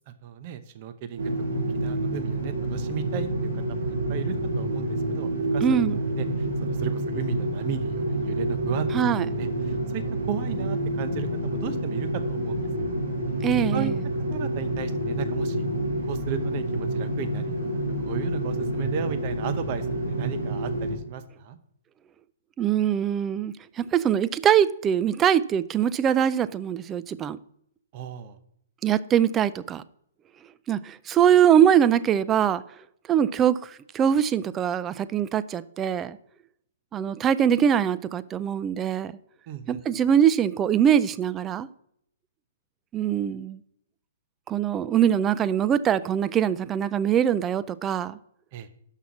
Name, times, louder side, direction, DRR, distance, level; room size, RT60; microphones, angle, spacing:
voice 1, 0.1-5.6 6.2-9.1 9.4-12.9 13.7-13.9 14.3-15.7 16.1-17.7 18.0-21.6 27.9-28.4 39.5-39.8 48.5-48.7, right 8 dB, 40° right, 0.8 m, -35 dB
sound 1, 1.2-20.9, right 1 dB, 80° right, 2.5 m, -28 dB
voice 2, 5.6-6.0 8.9-9.3 13.4-13.9 22.6-27.4 28.8-29.8 30.7-32.6 33.1-36.2 36.9-39.1 39.7-41.7 42.9-43.6 44.5-48.2, right 9 dB, 20° right, 0.4 m, -22 dB
6.3 x 5.6 x 7.0 m
hypercardioid pair, 145°, 0 cm